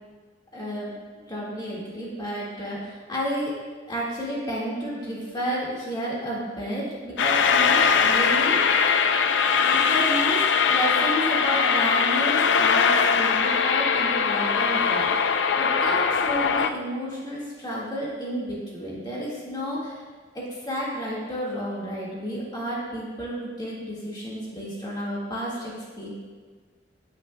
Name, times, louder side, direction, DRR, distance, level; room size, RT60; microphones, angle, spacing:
voice 1, 0.5-0.9 1.3-3.5 3.9-8.8 9.6-15.1 15.6-20.0 20.3-26.1, equal, 25° left, -6 dB, 1.8 m, -31 dB
sound 1, 7.2-16.7, left 6 dB, 75° left, 0.5 m, -21 dB
18.5 x 6.4 x 2.2 m, 1.5 s
head